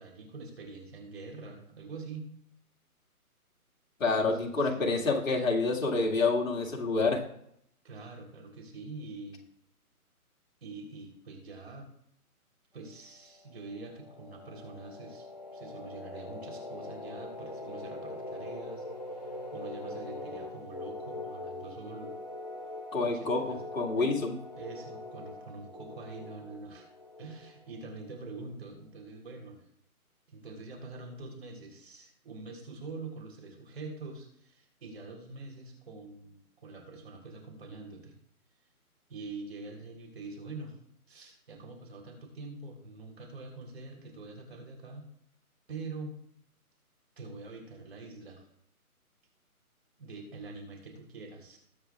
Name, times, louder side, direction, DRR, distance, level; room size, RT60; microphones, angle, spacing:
voice 1, 0.0-2.3 4.0-4.8 7.8-9.4 10.6-11.9 12.7-15.3 15.5-18.9 19.2-22.2 23.0-23.6 24.0-24.1 24.6-26.9 27.2-29.6 30.3-38.1 39.1-40.8 41.1-45.1 45.7-46.2 47.2-48.5 50.0-51.6, right 3 dB, 45° right, 1 dB, 3.7 m, -45 dB
voice 2, 4.0-7.2 22.9-24.4, left 3 dB, 60° left, 0 dB, 2.1 m, -28 dB
sound 1, 13.5-28.0, left 2 dB, 30° left, 0.5 m, -43 dB
21.0 x 7.0 x 2.4 m, 0.71 s
hypercardioid pair, 165°, 44 cm